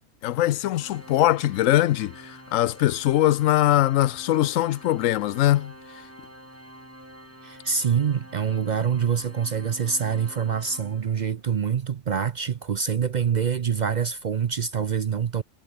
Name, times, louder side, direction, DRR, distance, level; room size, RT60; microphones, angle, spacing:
voice 1, 0.2-5.7, left 14 dB, 90° left, 1.0 m, -22 dB
Organ, 0.7-11.5, equal, 10° right, 5.9 m, -47 dB
voice 2, 7.4-15.4, right 7 dB, 50° right, 0.5 m, -25 dB
omnidirectional pair, 1.3 m